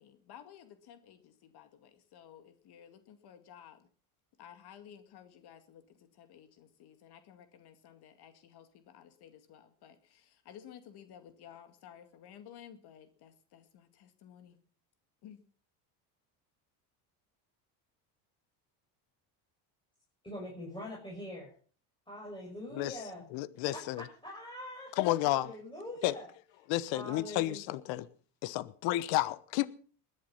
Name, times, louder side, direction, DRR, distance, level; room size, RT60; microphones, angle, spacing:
voice 1, 0.0-3.9 4.4-14.6 15.2-15.4, left 9 dB, 55° left, 2.2 m, -54 dB
voice 2, 20.2-21.5 22.1-23.2 23.7-24.9 25.2-26.2 26.9-27.6, left 1 dB, 10° left, 6.5 m, -43 dB
voice 3, 23.3-24.0 25.0-25.5 26.0-26.1 26.7-28.1 28.4-29.7, left 16 dB, 75° left, 1.2 m, -31 dB
20.5 x 11.0 x 5.6 m
cardioid pair, 125°, 46 cm